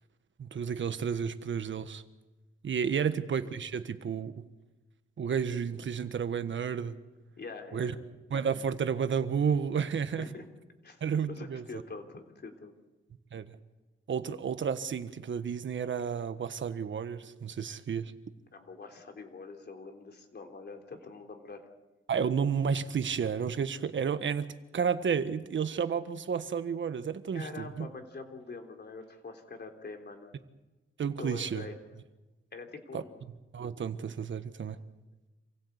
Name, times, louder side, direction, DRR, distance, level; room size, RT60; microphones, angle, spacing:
voice 1, 0.4-2.0 2.6-4.4 5.2-7.0 7.7-7.9 8.3-10.3 11.0-11.6 13.3-13.5 14.1-18.1 22.1-24.5 24.7-27.9 31.0-31.6 32.9-33.0 33.5-34.8, right 7 dB, 65° right, 10 dB, 1.5 m, -31 dB
voice 2, 7.4-8.0 10.1-10.5 10.8-12.7 18.5-21.7 27.3-30.3 31.2-31.8 32.5-33.2, left 4 dB, 50° left, 4 dB, 3.4 m, -44 dB
27.5 x 16.5 x 8.3 m, 1.1 s
cardioid pair, 75°, 21 cm